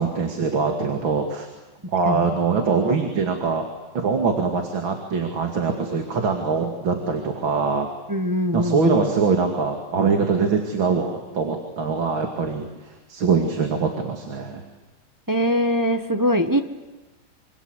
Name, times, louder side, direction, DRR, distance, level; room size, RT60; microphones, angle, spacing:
voice 1, 0.0-1.5 1.9-3.6 3.9-7.9 8.5-12.7 13.1-14.7, right 5 dB, 80° right, 4 dB, 3.1 m, -23 dB
voice 2, 8.1-9.1 15.3-16.6, equal, 15° right, 7 dB, 1.0 m, -22 dB
26.0 x 26.0 x 8.1 m, 1.2 s
omnidirectional pair, 2.1 m